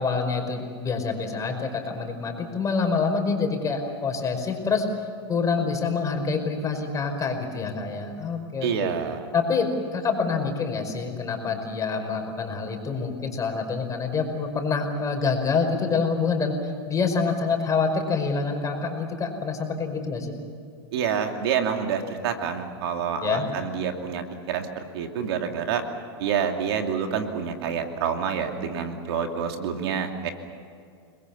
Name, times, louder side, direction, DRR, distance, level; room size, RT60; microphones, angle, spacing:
voice 1, 0.0-4.8 5.3-8.9 9.3-9.7 9.9-16.5 16.9-20.4 23.2-23.5, left 5 dB, 25° left, 4 dB, 5.2 m, -26 dB
voice 2, 8.6-9.3 20.9-25.8 26.2-30.3, right 7 dB, 70° right, 5 dB, 2.7 m, -28 dB
30.0 x 21.5 x 7.2 m, 2.3 s
hypercardioid pair, 105°, 14 cm